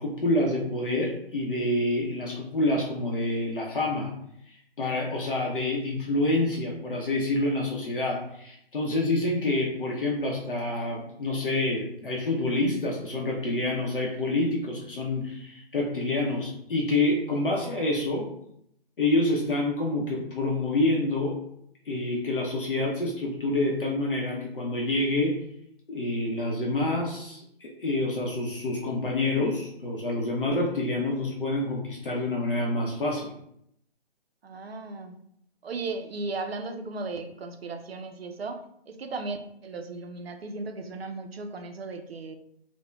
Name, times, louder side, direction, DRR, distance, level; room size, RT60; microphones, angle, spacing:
voice 1, 0.0-4.1 4.8-18.3 19.0-21.4 21.9-25.4 25.9-33.3, left 2 dB, 60° left, -2 dB, 0.6 m, -27 dB
voice 2, 34.4-35.2 35.6-38.6 38.9-42.3, right 3 dB, 70° right, 7 dB, 0.5 m, -36 dB
3.3 x 2.1 x 2.2 m, 0.73 s
figure-of-eight pair, 140°, 31 cm